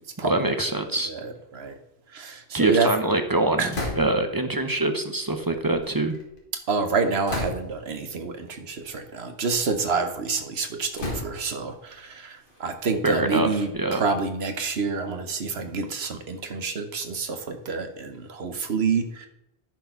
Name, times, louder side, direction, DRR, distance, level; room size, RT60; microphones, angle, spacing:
voice 1, 0.2-1.1 2.5-3.6 4.0-6.2 13.0-14.0, right 2 dB, 25° right, 7 dB, 0.7 m, -24 dB
voice 2, 1.1-1.7 2.1-2.9 3.6-3.7 6.7-19.3, right 4 dB, 70° right, 7 dB, 1.2 m, -28 dB
sound 1, 3.7-4.4 5.3-6.4 7.3-7.9 8.8-9.0 9.5-10.2 11.0-11.7 12.5-14.4, left 2 dB, 55° left, 1.9 m, -35 dB
10.5 x 4.5 x 5.7 m, 0.84 s
omnidirectional pair, 1.1 m